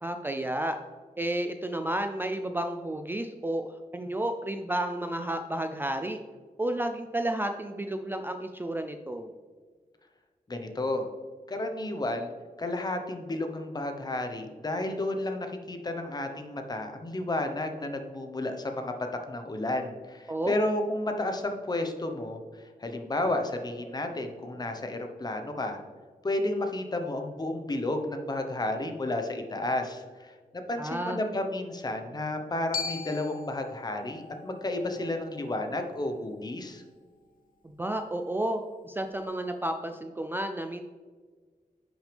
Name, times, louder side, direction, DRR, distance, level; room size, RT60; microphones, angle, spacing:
voice 1, 0.0-0.8 1.2-6.2 6.6-9.3 20.3-20.5 30.8-31.2 37.6-40.8, right 1 dB, 15° right, 6 dB, 0.4 m, -31 dB
voice 2, 10.5-11.1 11.5-12.3 12.6-18.9 19.3-25.8 26.2-36.8, left 2 dB, 25° left, 5 dB, 0.9 m, -32 dB
Glockenspiel, 32.7-36.9, left 5 dB, 75° left, 0.6 m, -41 dB
10.0 x 6.3 x 3.4 m, 1.5 s
wide cardioid pair, 165°, 15 cm